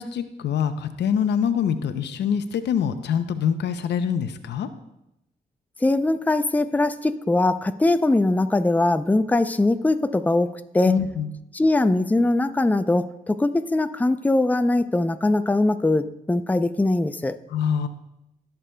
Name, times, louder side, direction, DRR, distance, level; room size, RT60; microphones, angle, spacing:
voice 1, 0.0-4.7 10.9-11.3 17.5-17.9, left 7 dB, 85° left, 10 dB, 0.6 m, -25 dB
voice 2, 5.8-10.9 11.5-17.4, left 2 dB, 10° left, 10 dB, 0.5 m, -21 dB
18.0 x 6.7 x 2.2 m, 0.88 s
cardioid pair, 65°, 17 cm